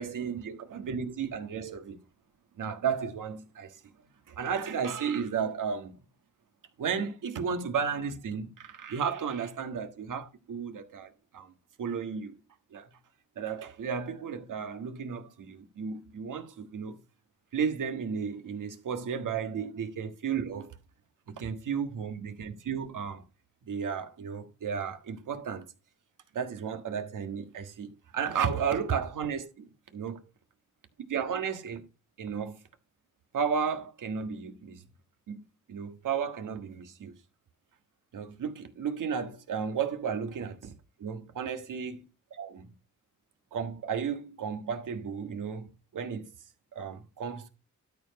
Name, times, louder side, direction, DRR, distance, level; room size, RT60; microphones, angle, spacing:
voice 1, 0.0-2.0 2.5-3.8 4.3-6.0 6.8-11.5 11.8-12.4 12.7-12.9 13.3-17.0 17.5-20.7 21.3-23.2 23.6-25.7 26.3-30.3 31.0-31.9 32.2-32.6 33.3-34.8 35.3-35.4 35.7-37.1 38.1-40.7 41.0-42.0 42.3-42.7 43.5-46.3 46.7-47.5, right 6 dB, 80° right, 1.6 m, -33 dB
12.5 x 4.8 x 5.2 m
cardioid pair, 85°, 31 cm